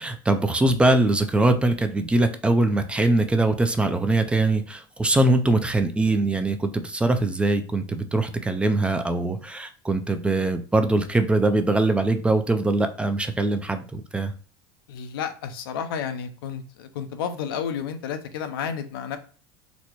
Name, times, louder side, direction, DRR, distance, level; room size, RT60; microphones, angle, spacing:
voice 1, 0.0-14.3, right 2 dB, 10° right, 8 dB, 0.4 m, -22 dB
voice 2, 14.9-19.2, left 7 dB, 90° left, 8 dB, 0.6 m, -31 dB
4.1 x 2.1 x 2.9 m, 0.40 s
supercardioid pair, 120°, 12 cm